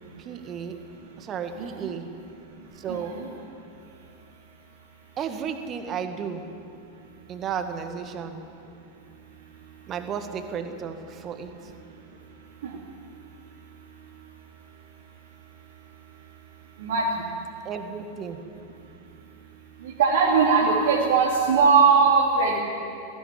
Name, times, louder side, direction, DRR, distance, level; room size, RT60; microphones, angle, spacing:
voice 1, 0.2-0.8 1.2-2.1 2.8-3.2 5.2-6.5 7.3-8.4 9.9-11.5 17.7-18.4, right 7 dB, 30° right, 7 dB, 1.9 m, -33 dB
voice 2, 1.6-1.9 2.9-3.3 12.6-12.7 16.8-17.2 19.8-22.6, right 5 dB, 55° right, -3 dB, 2.6 m, -20 dB
19.5 x 15.5 x 9.7 m, 2.6 s
figure-of-eight pair, 90°, 0 cm